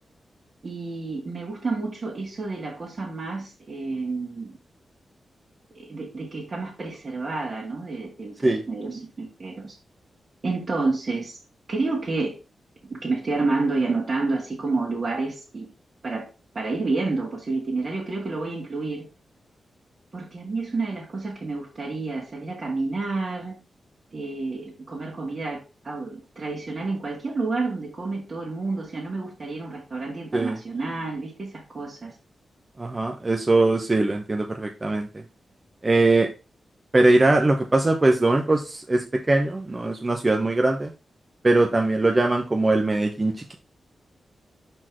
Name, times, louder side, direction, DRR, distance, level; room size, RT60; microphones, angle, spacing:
voice 1, 0.6-4.6 5.7-9.8 10.4-11.4 11.7-12.3 12.9-15.7 16.0-16.3 16.5-19.1 20.1-23.5 24.1-32.1, right 3 dB, 45° right, -4 dB, 1.9 m, -29 dB
voice 2, 32.8-35.1 35.8-36.3 36.9-40.9 41.4-43.5, right 2 dB, 25° right, 3 dB, 0.8 m, -21 dB
5.9 x 4.5 x 4.7 m, 0.32 s
cardioid pair, 90°, 0 cm